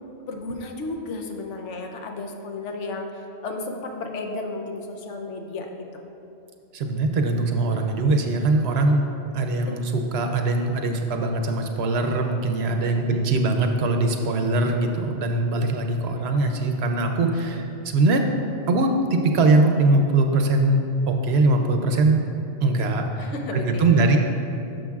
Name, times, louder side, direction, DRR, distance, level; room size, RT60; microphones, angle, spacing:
voice 1, 0.2-6.0 9.7-9.8 10.9-11.0 12.8-13.2 23.2-24.1, left 2 dB, 80° left, 3 dB, 1.0 m, -33 dB
voice 2, 6.7-9.1 9.3-18.3 18.7-22.2 22.6-24.2, right 2 dB, 65° right, 4 dB, 0.8 m, -21 dB
10.5 x 6.3 x 2.4 m, 2.8 s
omnidirectional pair, 1.2 m